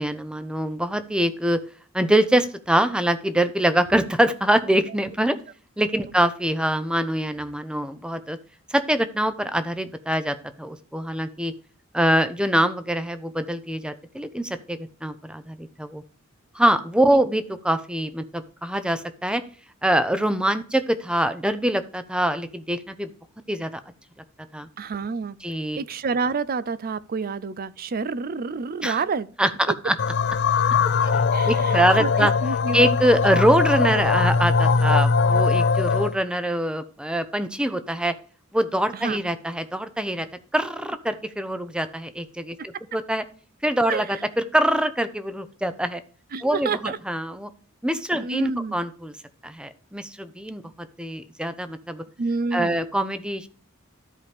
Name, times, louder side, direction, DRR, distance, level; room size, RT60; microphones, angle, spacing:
voice 1, 0.0-1.6 1.9-5.4 5.8-8.4 8.7-11.5 11.9-16.0 16.5-19.4 19.8-23.1 23.5-23.8 24.5-24.7 25.4-25.8 28.8-29.0 29.4-30.0 31.5-32.3 32.7-38.1 38.5-40.3 40.5-43.2 43.6-46.0 46.4-47.5 47.8-49.1 49.4-52.0 52.5-53.5, right 1 dB, 5° right, 0.7 m, -24 dB
voice 2, 24.8-25.4 25.8-29.3 30.8-32.8 38.9-39.2 43.9-44.2 46.3-47.0 48.2-48.8 52.2-52.8, right 4 dB, 45° right, 0.5 m, -29 dB
sound 1, 30.0-36.2, left 5 dB, 55° left, 0.5 m, -21 dB
13.5 x 4.9 x 3.4 m
head